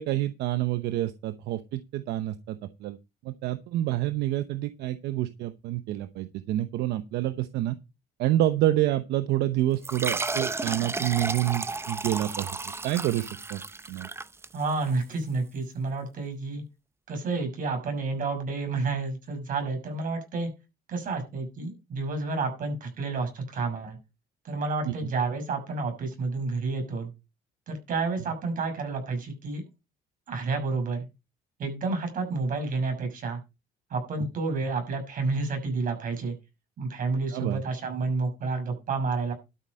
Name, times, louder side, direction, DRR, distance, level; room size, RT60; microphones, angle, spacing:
voice 1, 0.0-3.0 3.2-7.8 8.2-12.5 12.8-13.6 13.9-14.1 24.9-25.0 37.3-37.6, right 14 dB, 80° right, 11 dB, 0.9 m, -28 dB
sound 1, 9.8-15.0, right 3 dB, 15° right, 0.6 m, -33 dB
voice 2, 14.5-16.6 17.1-20.5 20.9-24.0 24.4-27.1 27.7-29.6 30.3-31.1 31.6-33.4 33.9-36.3 36.8-39.3, right 3 dB, 55° right, 5 dB, 6.4 m, -30 dB
12.5 x 7.6 x 5.3 m, 0.27 s
cardioid pair, 110°, 17 cm